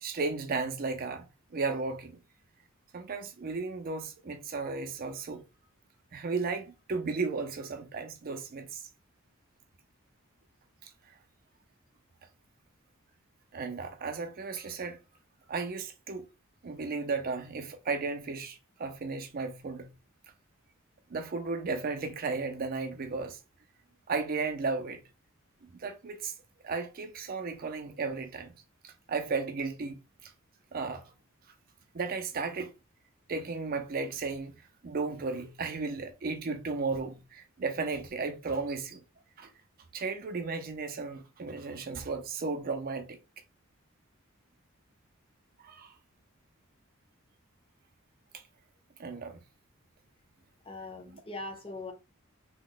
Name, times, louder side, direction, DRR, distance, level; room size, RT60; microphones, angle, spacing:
voice 1, 0.0-1.3 1.5-2.2 2.9-5.4 6.1-8.8 10.8-10.9 13.5-15.0 15.5-16.3 16.6-19.9 21.1-23.4 24.1-25.0 25.7-26.3 26.6-28.5 28.8-30.3 30.7-31.0 31.9-32.7 33.3-34.5 34.8-39.0 39.4-39.5 39.9-43.2 45.6-45.9 49.0-49.4, right 4 dB, 45° right, 0.5 m, -34 dB
voice 2, 50.6-51.9, left 2 dB, 25° left, 0.7 m, -41 dB
2.9 x 2.2 x 3.8 m
head